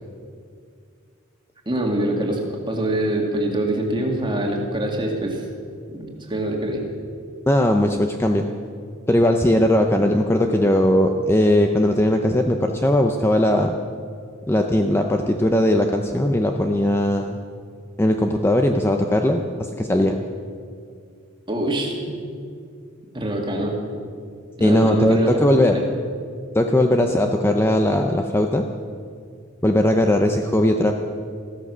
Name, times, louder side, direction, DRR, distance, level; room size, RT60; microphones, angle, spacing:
voice 1, 1.7-5.5 5.9-6.8 21.5-22.0 23.1-23.8 24.6-25.8, right 1 dB, 25° right, 1 dB, 2.1 m, -24 dB
voice 2, 7.5-8.4 9.1-13.7 14.5-17.4 18.0-19.4 19.8-20.2 24.6-25.8 26.5-28.6 29.6-30.9, left 1 dB, 10° left, 4 dB, 0.6 m, -19 dB
15.0 x 13.5 x 6.2 m, 2.2 s
head